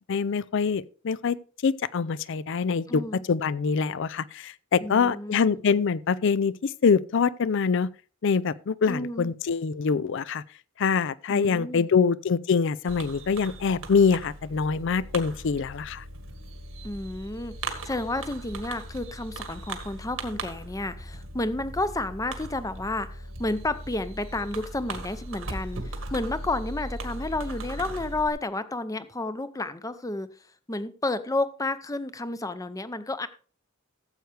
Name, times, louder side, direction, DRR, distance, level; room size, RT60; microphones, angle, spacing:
voice 1, 0.1-1.4 1.6-7.9 8.2-10.4 10.8-16.0, left 5 dB, 60° left, 0.4 m, -24 dB
voice 2, 2.9-3.2 4.8-5.6 8.9-9.3 11.3-11.9 16.8-17.6 17.8-30.3 30.7-33.3, left 2 dB, 15° left, 0.6 m, -31 dB
Fireworks, 12.9-28.3, right 2 dB, 80° right, 1.8 m, -38 dB
14.0 x 7.9 x 3.4 m
head